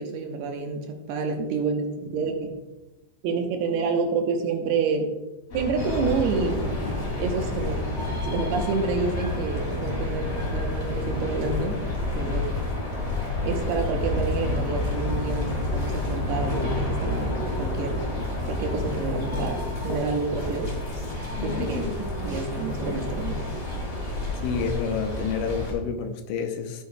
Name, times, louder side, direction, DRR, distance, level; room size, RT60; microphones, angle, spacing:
voice 1, 0.0-2.5 3.2-5.1 5.5-7.9 8.1-11.8 12.1-12.5 13.4-18.0 18.4-20.7 21.4-21.9 22.2-23.4, right 4 dB, 75° right, 3 dB, 2.7 m, -28 dB
sound 1, 5.5-11.0, left 1 dB, 40° left, 3.1 m, -37 dB
sound 2, 5.8-25.7, left 2 dB, 20° left, 1.7 m, -29 dB
voice 2, 24.4-26.8, left 6 dB, 90° left, 5 dB, 3.3 m, -29 dB
13.0 x 8.2 x 2.3 m, 1.1 s
omnidirectional pair, 5.3 m